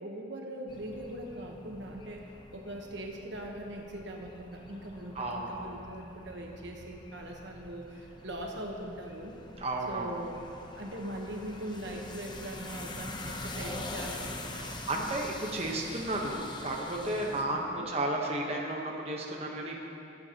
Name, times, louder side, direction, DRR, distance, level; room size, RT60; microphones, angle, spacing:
voice 1, 0.0-9.4 9.9-10.4 10.7-14.8 17.5-17.9, right 1 dB, 65° right, 0 dB, 1.2 m, -41 dB
sound 1, 0.7-17.4, left 2 dB, 25° left, 0.7 m, -45 dB
voice 2, 5.1-5.7 9.6-10.1 14.5-19.8, right 1 dB, 30° right, -2 dB, 1.1 m, -33 dB
21.0 x 8.6 x 3.0 m, 2.9 s
head